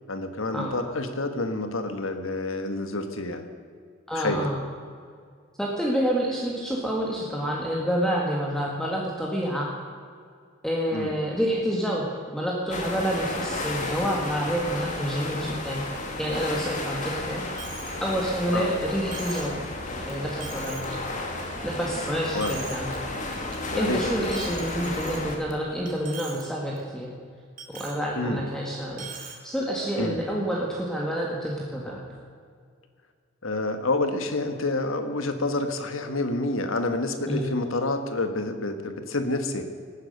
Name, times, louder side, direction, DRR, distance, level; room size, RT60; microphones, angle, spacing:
voice 1, 0.1-3.5 4.1-4.5 10.9-11.1 18.5-18.7 22.3-22.6 23.7-24.1 28.2-28.4 30.0-30.2 33.4-39.6, left 2 dB, 80° left, 8 dB, 1.5 m, -28 dB
voice 2, 4.1-4.6 5.6-9.7 10.6-12.1 12.3-15.8 16.2-17.4 18.0-19.6 20.1-20.8 21.6-22.9 23.5-27.2 27.7-29.1 29.4-32.0 37.3-37.5, equal, 5° left, -3 dB, 1.7 m, -28 dB
sound 1, 12.7-25.4, left 2 dB, 35° left, 2.1 m, -33 dB
Coin (dropping), 17.6-18.0 18.4-18.5 19.1-19.6 20.1-20.2 20.4-21.0 21.4-21.9 22.2-23.0 23.3-23.6 24.3-25.5 25.9-26.4 26.8-26.9 27.6-28.0 28.9-29.4, right 6 dB, 40° right, 2.2 m, -41 dB
18.0 x 9.9 x 6.6 m, 2.1 s
head